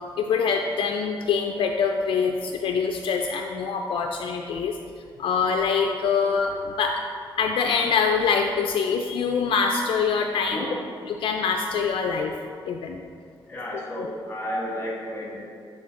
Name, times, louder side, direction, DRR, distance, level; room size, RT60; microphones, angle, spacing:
voice 1, 0.2-4.7 5.2-7.0 7.4-10.7 11.1-12.3 12.7-13.0 14.0-14.1, left 5 dB, 65° left, 3 dB, 0.3 m, -24 dB
voice 2, 10.5-10.9 13.5-15.4, equal, 25° left, -3 dB, 1.5 m, -32 dB
12.0 x 4.3 x 2.5 m, 2.2 s
wide cardioid pair, 160°, 9 cm